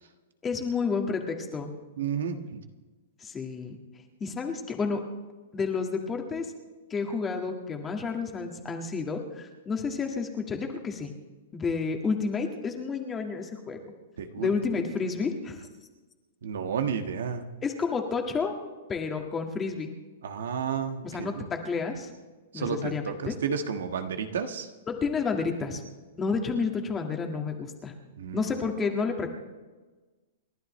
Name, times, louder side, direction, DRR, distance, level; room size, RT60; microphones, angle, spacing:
voice 1, 0.4-1.7 3.2-3.8 4.2-5.0 5.5-6.5 6.9-11.1 11.5-13.8 14.4-15.6 17.6-18.5 18.9-19.9 21.0-22.1 22.5-23.3 24.9-25.8 26.2-27.9 28.3-29.3, left 5 dB, 15° left, 3 dB, 1.8 m, -30 dB
voice 2, 2.0-2.6 14.2-14.5 16.4-17.4 20.2-21.4 22.5-24.7 28.2-28.5, right 7 dB, 80° right, 6 dB, 1.5 m, -31 dB
29.5 x 11.5 x 3.2 m, 1.3 s
hypercardioid pair, 140°, 0 cm